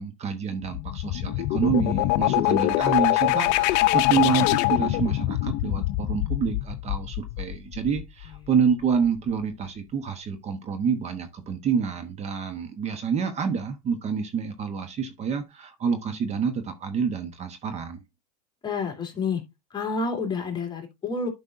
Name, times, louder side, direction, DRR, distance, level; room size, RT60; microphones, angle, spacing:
voice 1, 0.0-18.0, right 6 dB, 30° right, 1.0 m, -28 dB
sound 1, 0.6-8.3, left 17 dB, 55° left, 0.6 m, -24 dB
voice 2, 18.6-19.4 19.7-21.3, left 4 dB, 20° left, 2.7 m, -29 dB
11.5 x 5.3 x 2.6 m
supercardioid pair, 115°, 21 cm